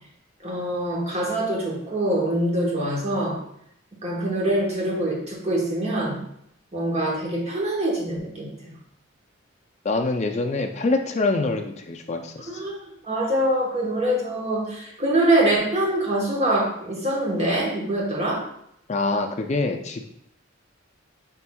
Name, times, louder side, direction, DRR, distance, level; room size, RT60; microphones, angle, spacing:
voice 1, 0.4-3.4 4.0-6.2 6.7-8.5 12.5-18.4, right 1 dB, 30° right, -3 dB, 1.1 m, -24 dB
voice 2, 9.8-12.6 18.9-20.0, left 3 dB, 35° left, 4 dB, 0.4 m, -25 dB
5.8 x 3.5 x 2.3 m, 0.73 s
head